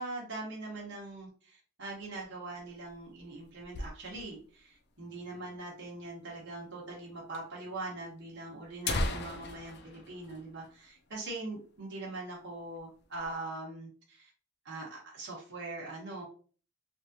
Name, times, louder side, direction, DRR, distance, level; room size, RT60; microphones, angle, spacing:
voice 1, 0.0-14.3 14.6-16.2, right 2 dB, 55° right, -5 dB, 1.1 m, -42 dB
sound 1, 2.7-4.5 4.8-4.9 5.1-5.2 5.9-6.0 6.9-7.0 7.3-7.4 8.2-8.3 8.6-11.2 11.5-11.7 12.1-12.3 12.8-13.3, left 2 dB, 50° left, 0.4 m, -38 dB
3.0 x 2.7 x 2.6 m, 0.40 s
head